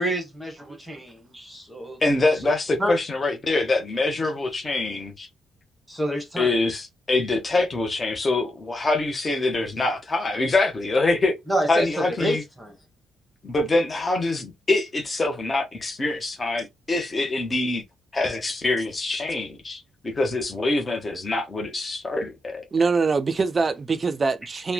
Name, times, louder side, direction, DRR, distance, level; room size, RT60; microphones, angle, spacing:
voice 1, 0.0-2.0 2.8-2.9 5.9-6.5 11.5-12.8, equal, 5° right, 1.0 m, -28 dB
voice 2, 2.0-5.3 6.4-11.3 11.7-12.4 13.4-17.8 18.1-22.7, left 2 dB, 30° left, 0.8 m, -24 dB
voice 3, 22.7-24.7, right 4 dB, 35° right, 0.4 m, -23 dB
3.0 x 2.1 x 2.2 m
cardioid pair, 90°, 0 cm